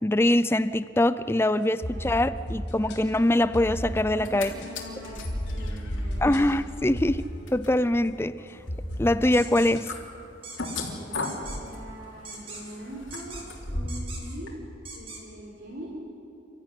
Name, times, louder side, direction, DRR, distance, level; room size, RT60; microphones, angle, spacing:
voice 1, 0.0-4.5 6.2-7.2 7.5-8.6 9.0-9.9, left 1 dB, 15° left, 15 dB, 0.5 m, -23 dB
sound 1, 1.6-8.1 8.5-10.0, equal, 60° left, 5.2 m, -36 dB
sound 2, 4.1-4.5 4.7-14.1 14.5-14.6, left 2 dB, 90° left, 3.4 m, -36 dB
voice 2, 4.1-5.2 5.5-6.3 10.8-14.5 14.9-15.9, equal, 55° right, -3 dB, 3.9 m, -42 dB
sound 3, 9.3-9.7 10.4-10.8 11.2-11.6 12.3-12.8 13.1-13.5 13.9-14.4 14.9-15.2, right 3 dB, 30° right, 3.3 m, -41 dB
29.5 x 14.0 x 9.9 m, 2.9 s
head